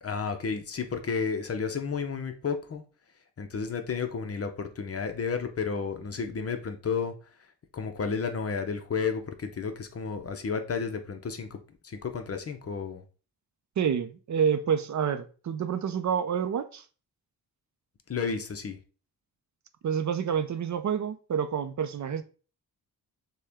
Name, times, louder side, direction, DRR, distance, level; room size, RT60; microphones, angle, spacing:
voice 1, 0.0-2.8 3.4-7.1 7.7-11.6 11.8-13.0 18.1-18.8, left 5 dB, 40° left, 0.7 m, -32 dB
voice 2, 13.8-16.8 19.8-22.2, right 7 dB, 50° right, 0.5 m, -28 dB
6.5 x 2.2 x 3.4 m
wide cardioid pair, 115°, 37 cm